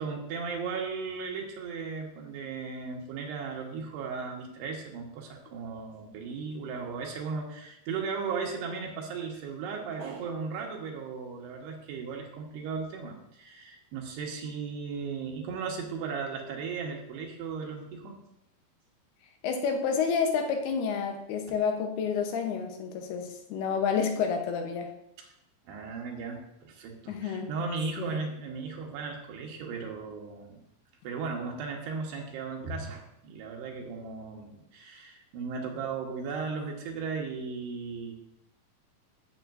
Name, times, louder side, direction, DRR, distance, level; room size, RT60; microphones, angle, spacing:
voice 1, 0.0-18.2 25.7-30.6 31.0-38.1, right 5 dB, 85° right, 1 dB, 3.4 m, -36 dB
voice 2, 19.4-24.9 27.1-27.5 28.0-28.2, left 6 dB, 80° left, 3 dB, 3.0 m, -29 dB
14.0 x 7.2 x 2.6 m, 0.81 s
omnidirectional pair, 4.6 m